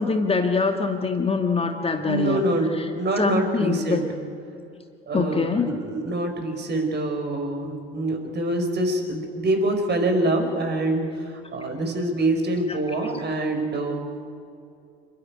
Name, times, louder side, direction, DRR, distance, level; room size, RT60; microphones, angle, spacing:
voice 1, 0.0-2.4 2.8-2.9 3.2-4.0 5.1-5.8 12.7-13.1, left 4 dB, 20° left, 4 dB, 1.8 m, -24 dB
voice 2, 2.0-4.0 5.1-14.0, right 1 dB, 35° right, 4 dB, 4.8 m, -25 dB
28.5 x 12.5 x 9.6 m, 2.5 s
figure-of-eight pair, 65°, 30 cm